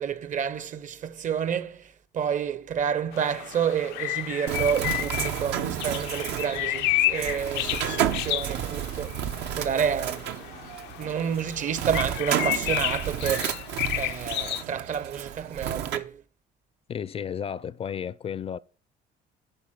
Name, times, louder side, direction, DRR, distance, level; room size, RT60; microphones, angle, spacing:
voice 1, 0.0-9.2 9.6-10.6 11.0-13.6 13.9-16.2, right 8 dB, 50° right, 0.8 m, -29 dB
sound 1, 3.1-14.6, left 16 dB, 90° left, 0.5 m, -31 dB
Bird, 4.5-16.0, right 10 dB, 80° right, 0.9 m, -32 dB
voice 2, 16.9-18.6, left 8 dB, 35° left, 0.4 m, -33 dB
11.0 x 4.2 x 7.4 m
cardioid pair, 110°, 17 cm